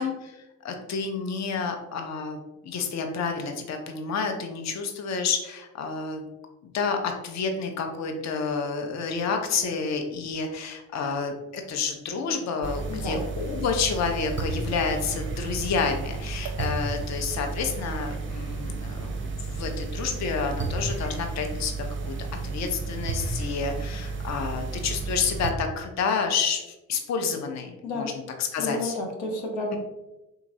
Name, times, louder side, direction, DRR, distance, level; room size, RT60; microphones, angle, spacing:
voice 1, 0.0-2.4 2.6-6.3 6.7-28.1 28.4-28.9, left 5 dB, 45° left, 4 dB, 0.6 m, -29 dB
sound 1, 12.6-25.5, right 4 dB, 30° right, 0.5 m, -32 dB
voice 2, 28.6-29.8, left 2 dB, 85° left, 1 dB, 0.7 m, -31 dB
3.7 x 2.9 x 2.6 m, 1.0 s
hypercardioid pair, 45°, 38 cm